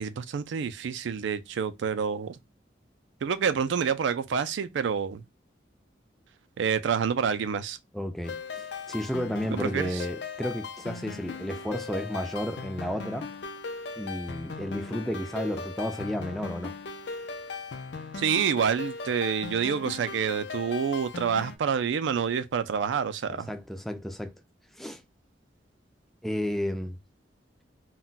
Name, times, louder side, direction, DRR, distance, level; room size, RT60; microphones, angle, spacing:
voice 1, 0.0-2.4 3.2-5.2 6.6-7.8 9.6-10.0 18.1-23.5, right 7 dB, 80° right, 0.4 m, -28 dB
voice 2, 7.9-13.3 14.0-16.7 23.3-24.3 24.8-25.0 26.2-27.0, equal, ahead, 0.3 m, -32 dB
sound 1, 8.2-21.6, left 4 dB, 65° left, 0.5 m, -38 dB
2.2 x 2.1 x 3.7 m
head